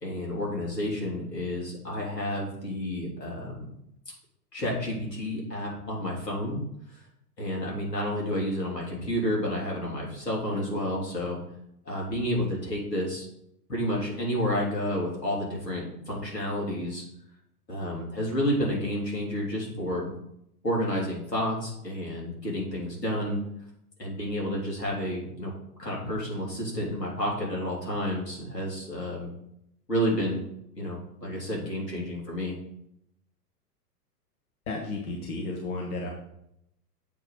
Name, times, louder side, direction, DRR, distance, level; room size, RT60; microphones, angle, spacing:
voice 1, 0.0-3.7 4.5-6.6 7.4-11.4 11.8-13.3 13.7-17.0 17.7-20.1 20.6-23.4 24.0-25.5 25.8-29.3 29.9-30.4 30.8-32.5, equal, 90° left, -3 dB, 3.2 m, -30 dB
voice 2, 34.7-36.1, left 3 dB, 60° left, 0 dB, 1.6 m, -33 dB
7.7 x 4.8 x 5.2 m, 0.78 s
figure-of-eight pair, 110°, 48 cm